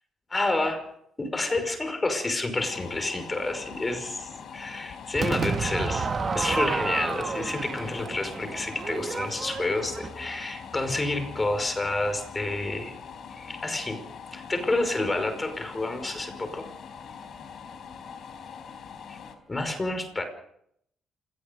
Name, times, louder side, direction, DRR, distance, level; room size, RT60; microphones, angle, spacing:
voice 1, 0.3-0.8 1.2-6.1 6.3-12.9 13.4-14.0 14.3-16.6 19.1-19.2 19.5-20.2, left 2 dB, 20° left, 7 dB, 5.4 m, -29 dB
sound 1, 2.6-19.3, left 6 dB, 60° left, 4.3 m, -43 dB
Crowd / Fireworks, 5.2-10.4, right 5 dB, 40° right, 1.9 m, -31 dB
26.5 x 19.5 x 5.4 m, 0.71 s
cardioid pair, 90°, 0 cm